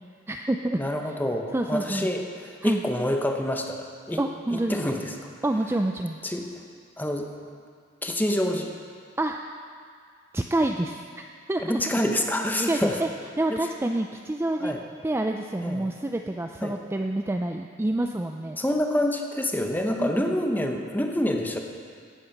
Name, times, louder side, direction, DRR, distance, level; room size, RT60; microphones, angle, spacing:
voice 1, 0.3-0.8 1.5-2.1 2.6-2.8 4.2-5.0 5.4-6.2 9.2-9.4 10.3-11.0 11.5-11.8 12.7-13.1 13.4-14.7 15.0-18.6 20.0-20.1, right 1 dB, 15° right, 4 dB, 0.4 m, -27 dB
voice 2, 0.8-4.2 4.5-5.2 6.2-6.5 7.0-7.3 8.0-8.7 11.6-13.0 13.5-13.6 14.6-14.8 15.6-15.9 16.6-16.8 18.6-21.6, left 1 dB, 10° left, 3 dB, 1.0 m, -27 dB
15.5 x 8.3 x 5.9 m, 2.1 s
head